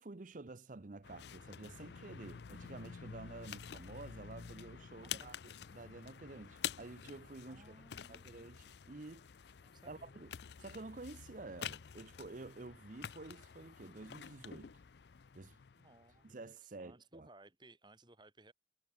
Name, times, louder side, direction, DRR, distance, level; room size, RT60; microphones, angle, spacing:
voice 1, 0.0-5.4 5.7-7.7 8.1-9.3 9.9-10.3 10.6-14.7 15.3-15.6 16.2-17.3, right 2 dB, 45° right, 0.7 m, -50 dB
sound 1, 1.0-16.3, left 8 dB, 65° left, 0.5 m, -49 dB
voice 2, 7.5-8.3 9.6-10.3 15.7-18.5, right 2 dB, 25° right, 2.8 m, -61 dB
head